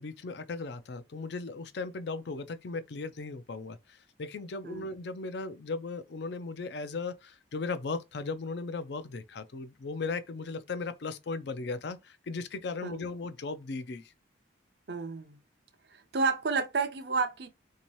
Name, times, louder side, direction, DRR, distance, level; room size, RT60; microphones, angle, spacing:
voice 1, 0.0-14.1, left 3 dB, 60° left, 0.4 m, -37 dB
voice 2, 14.9-15.4 15.9-17.5, right 4 dB, 55° right, 0.5 m, -31 dB
3.5 x 2.8 x 3.0 m
head